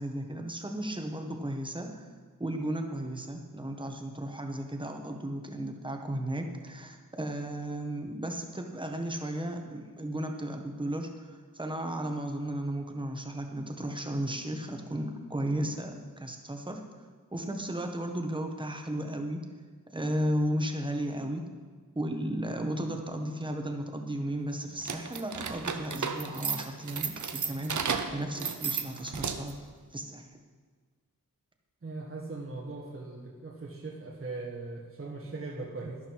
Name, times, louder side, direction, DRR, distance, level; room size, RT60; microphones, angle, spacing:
voice 1, 0.0-2.1 2.4-16.8 17.3-19.5 19.9-21.4 21.9-29.5 29.9-30.2, right 1 dB, 15° right, 3 dB, 1.4 m, -34 dB
sound 1, 24.8-29.6, right 6 dB, 55° right, 0.9 m, -34 dB
voice 2, 31.8-36.0, right 3 dB, 40° right, -3 dB, 1.6 m, -39 dB
12.0 x 11.0 x 4.8 m, 1.5 s
wide cardioid pair, 100°, 35 cm